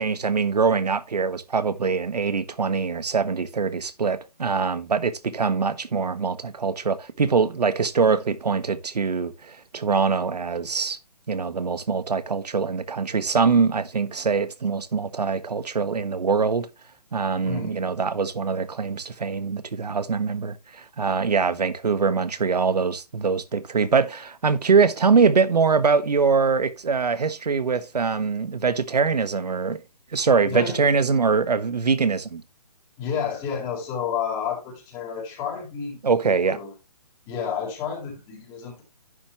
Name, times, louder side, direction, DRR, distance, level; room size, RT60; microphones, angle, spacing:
voice 1, 0.0-11.0 11.3-16.7 17.1-29.8 30.1-32.4 36.0-36.6, right 5 dB, 85° right, 1.3 m, -23 dB
voice 2, 17.4-17.9 30.5-30.8 33.0-36.7 37.3-38.8, left 7 dB, 20° left, 3.9 m, -31 dB
10.5 x 7.2 x 3.0 m
hypercardioid pair, 150°, 20 cm